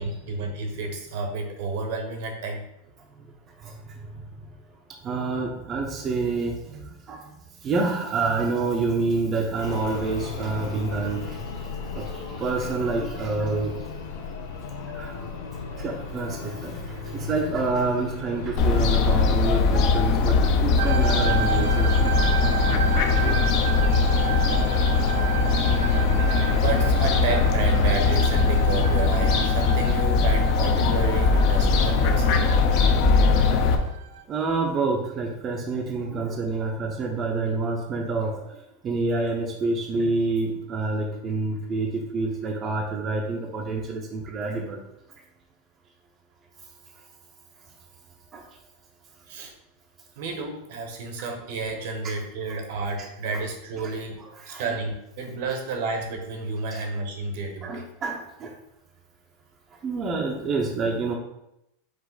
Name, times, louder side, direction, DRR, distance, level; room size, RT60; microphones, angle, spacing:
voice 1, 0.0-2.6 26.3-32.6 49.3-49.5 50.2-54.2 54.5-57.8, right 3 dB, 60° right, 4 dB, 0.9 m, -31 dB
voice 2, 3.6-4.5 5.0-7.2 7.6-13.9 14.9-15.2 15.8-22.2 25.0-25.1 34.3-44.8 48.3-48.4 51.2-51.3 54.2-54.6 56.7-56.8 57.6-58.5 59.8-61.2, right 3 dB, 25° right, 1 dB, 0.5 m, -28 dB
sound 1, 9.6-24.7, left 5 dB, 80° left, 0.7 m, -35 dB
Fowl, 18.6-33.8, left 4 dB, 45° left, 0.5 m, -21 dB
sound 2, 20.8-34.2, right 9 dB, 80° right, 0.4 m, -33 dB
4.8 x 2.5 x 3.9 m, 0.84 s
supercardioid pair, 145°, 0 cm